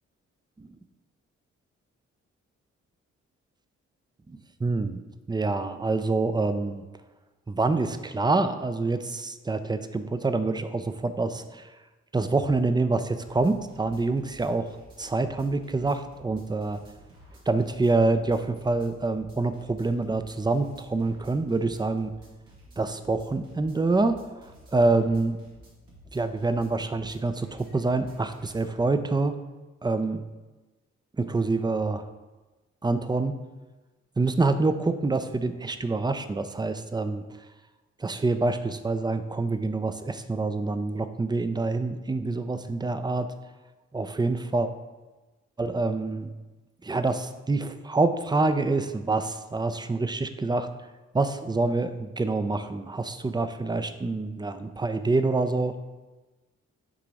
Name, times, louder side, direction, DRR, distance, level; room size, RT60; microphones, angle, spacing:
voice 1, 4.3-5.0 5.3-6.8 7.5-11.7 12.1-14.7 15.0-16.8 17.5-22.1 22.8-24.2 24.7-25.4 26.1-29.3 29.8-30.2 31.2-32.1 32.8-33.4 34.2-37.2 38.0-43.3 43.9-44.7 45.6-46.3 46.8-50.7 51.1-55.7, right 3 dB, 15° right, 10 dB, 0.5 m, -26 dB
sound 1, 13.2-28.8, equal, 85° right, 1.6 m, -53 dB
7.6 x 2.9 x 4.8 m, 1.2 s
hypercardioid pair, 45°, 32 cm